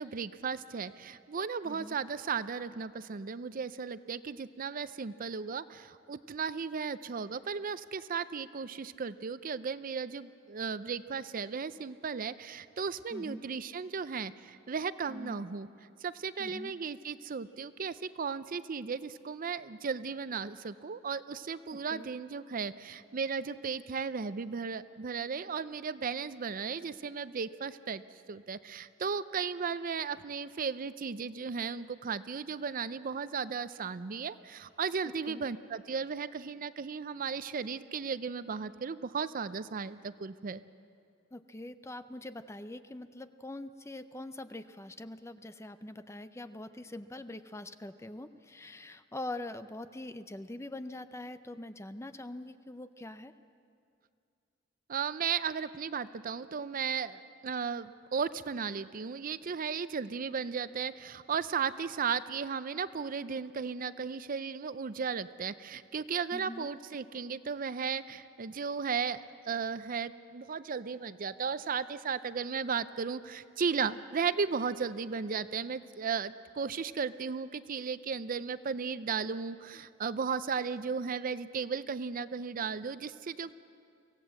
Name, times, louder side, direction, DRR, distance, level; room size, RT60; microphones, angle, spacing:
voice 1, 0.0-15.7 16.0-28.0 28.3-40.6 54.9-69.2 69.5-83.5, right 6 dB, 45° right, 14 dB, 0.5 m, -35 dB
voice 2, 1.6-2.0 13.1-13.4 15.1-15.4 16.4-16.7 21.9-22.1 35.3-35.4 41.3-53.3 66.3-66.7, left 1 dB, 15° left, 11 dB, 0.6 m, -43 dB
24.5 x 16.5 x 7.6 m, 2.4 s
head